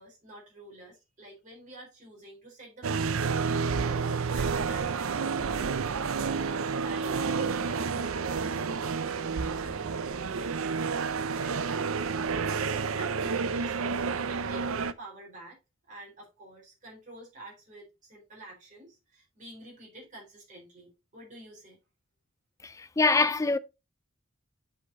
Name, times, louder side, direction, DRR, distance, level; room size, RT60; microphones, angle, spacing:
voice 1, 0.0-9.9 10.2-15.6 15.9-21.8, right 1 dB, 35° right, 4.0 m, -49 dB
sound 1, 2.8-14.9, right 5 dB, 70° right, 0.6 m, -30 dB
voice 2, 22.6-23.6, left 3 dB, 15° left, 0.4 m, -24 dB
8.1 x 5.1 x 4.0 m
head